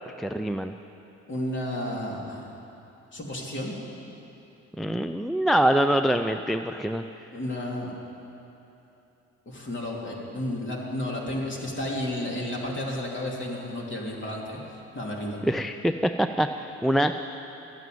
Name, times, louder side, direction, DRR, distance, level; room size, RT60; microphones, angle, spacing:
voice 1, 0.2-0.7 4.8-7.0 15.4-17.1, right 1 dB, ahead, 8 dB, 0.4 m, -24 dB
voice 2, 1.3-2.5 3.1-3.7 7.3-7.9 9.5-14.6 14.9-15.4, left 1 dB, 40° left, -2 dB, 2.9 m, -32 dB
13.0 x 9.1 x 9.2 m, 2.9 s
cardioid pair, 90°, 30 cm